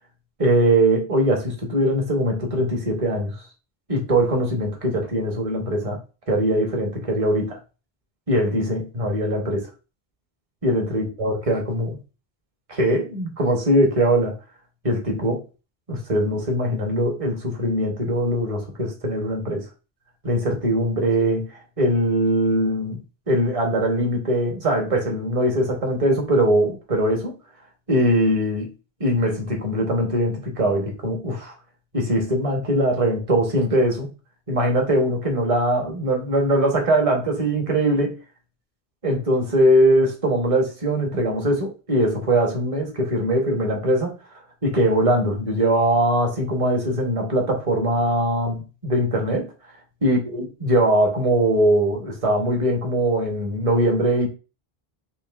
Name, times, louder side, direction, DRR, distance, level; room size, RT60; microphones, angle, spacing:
voice 1, 0.4-3.4 3.9-6.0 6.3-7.6 8.3-9.7 10.6-12.0 12.7-14.3 14.8-15.4 15.9-19.7 20.2-21.5 21.8-23.0 23.3-27.3 27.9-28.7 29.0-31.5 31.9-34.1 34.5-38.2 39.0-44.1 44.6-49.5 50.0-54.3, right 1 dB, 35° right, 1.1 m, -21 dB
5.8 x 2.6 x 2.4 m
omnidirectional pair, 1.0 m